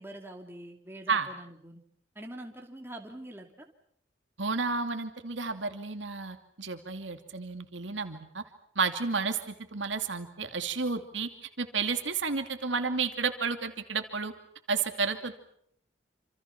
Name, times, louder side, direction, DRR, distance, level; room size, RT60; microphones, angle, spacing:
voice 1, 0.0-1.8 2.1-3.5, right 1 dB, 10° right, 3 dB, 2.9 m, -44 dB
voice 2, 4.4-8.4 8.8-11.3 11.6-14.3 14.7-15.4, right 4 dB, 75° right, 7 dB, 2.6 m, -31 dB
28.0 x 27.0 x 6.0 m, 0.67 s
head